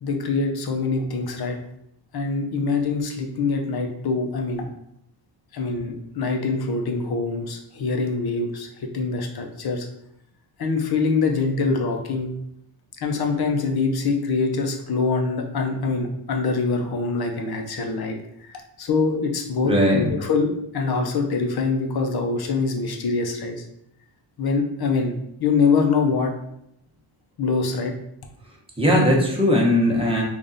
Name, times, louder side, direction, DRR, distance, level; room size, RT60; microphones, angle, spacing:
voice 1, 0.0-1.6 2.1-4.7 5.5-9.9 10.6-12.3 13.0-23.6 24.4-26.3 27.4-27.9, left 4 dB, 55° left, 3 dB, 0.7 m, -24 dB
voice 2, 19.6-20.1 28.8-30.2, left 1 dB, 10° right, -3 dB, 1.0 m, -19 dB
3.5 x 2.5 x 3.9 m, 0.77 s
wide cardioid pair, 115°, 45 cm